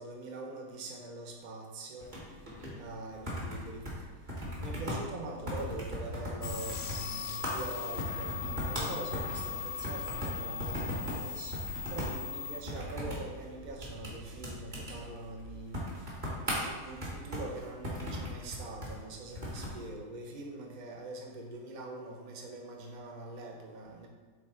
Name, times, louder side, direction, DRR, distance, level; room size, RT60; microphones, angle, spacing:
voice 1, 0.0-2.1 2.7-3.9 4.6-11.5 11.9-15.8 16.4-24.1, right 2 dB, 45° right, 0 dB, 0.6 m, -43 dB
sound 1, 2.0-19.8, equal, 25° right, 1.4 m, -39 dB
sound 2, 6.4-12.6, left 6 dB, 90° left, 1.4 m, -39 dB
7.2 x 3.4 x 4.4 m, 1.5 s
omnidirectional pair, 1.9 m